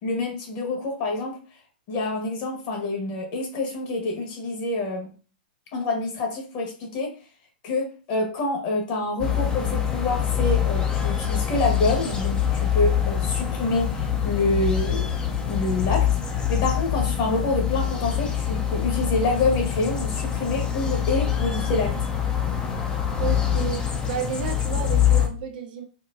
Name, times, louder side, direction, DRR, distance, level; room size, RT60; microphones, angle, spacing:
voice 1, 0.0-1.3 1.9-5.1 5.7-7.1 7.6-15.1 15.4-16.1 16.5-21.9, left 2 dB, 45° left, 1 dB, 1.4 m, -27 dB
sound 1, 9.2-25.3, left 9 dB, 15° left, 0.5 m, -25 dB
voice 2, 23.2-25.8, right 7 dB, 65° right, 3 dB, 0.8 m, -31 dB
4.3 x 2.2 x 2.6 m, 0.37 s
hypercardioid pair, 130°, 5 cm